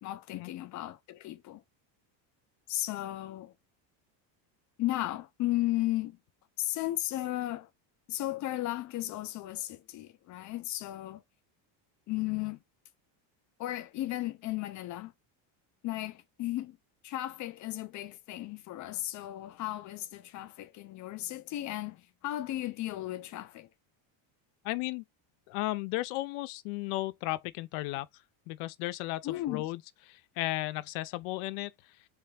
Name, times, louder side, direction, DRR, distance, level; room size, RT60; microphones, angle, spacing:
voice 1, 0.0-1.6 2.7-3.5 4.8-6.2 6.6-7.7 8.1-11.2 12.1-12.6 13.6-15.1 15.8-16.8 17.0-23.7 29.2-29.7, left 15 dB, 40° left, 0.4 m, -35 dB
voice 2, 24.6-25.0 25.5-28.1 28.5-29.8 30.1-31.7, left 18 dB, 85° left, 0.6 m, -34 dB
3.3 x 3.2 x 3.2 m
cardioid pair, 145°, 49 cm